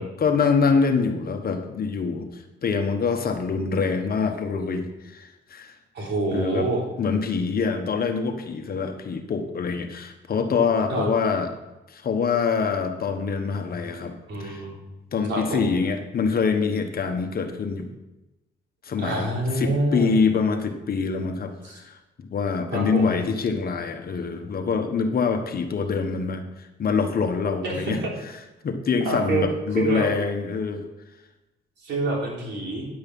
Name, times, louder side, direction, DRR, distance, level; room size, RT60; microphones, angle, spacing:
voice 1, 0.0-5.7 6.3-6.7 7.0-11.5 11.9-14.1 14.4-14.6 15.1-17.9 18.8-19.3 19.5-28.0 28.6-30.9, left 5 dB, 50° left, 6 dB, 1.3 m, -25 dB
voice 2, 5.9-6.8 10.9-11.1 14.3-14.8 15.3-15.7 19.0-20.1 21.6-21.8 22.7-23.2 27.6-28.1 29.0-29.5 29.8-30.1 31.8-32.8, right 2 dB, 65° right, -2 dB, 3.6 m, -26 dB
9.8 x 7.9 x 5.4 m, 1.0 s
cardioid pair, 90°, 20 cm